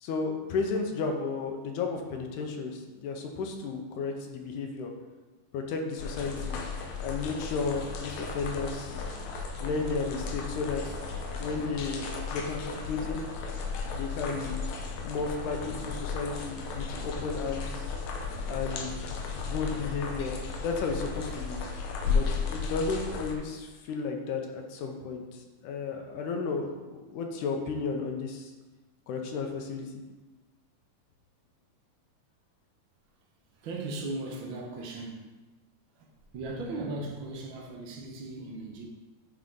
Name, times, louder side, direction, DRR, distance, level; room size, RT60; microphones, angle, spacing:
voice 1, 0.0-4.9 5.5-6.6 7.0-9.0 9.6-11.0 11.4-13.2 13.9-14.6 15.0-17.9 18.5-19.0 19.3-21.6 22.1-28.5 29.1-29.9, left 4 dB, 90° left, 3 dB, 2.2 m, -33 dB
sound 1, 6.0-23.3, left 4 dB, 75° left, 2.0 m, -34 dB
voice 2, 33.5-35.3 35.9-36.1 36.3-38.8, right 2 dB, 80° right, -1 dB, 1.1 m, -37 dB
9.4 x 3.8 x 3.7 m, 1.2 s
omnidirectional pair, 3.5 m